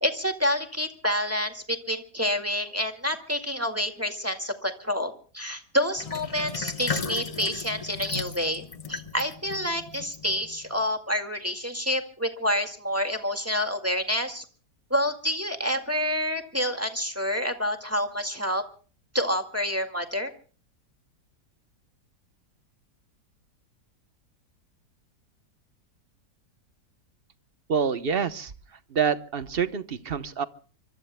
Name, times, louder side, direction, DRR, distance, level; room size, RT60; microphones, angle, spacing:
voice 1, 0.0-8.6 8.9-14.5 14.9-18.6 19.1-20.3, equal, 10° right, 5 dB, 1.9 m, -28 dB
Sink (filling or washing), 6.0-10.7, left 5 dB, 30° left, 0.7 m, -35 dB
voice 2, 27.7-28.5 28.9-30.4, right 6 dB, 40° right, 12 dB, 1.0 m, -26 dB
25.0 x 25.0 x 2.2 m, 0.40 s
omnidirectional pair, 1.8 m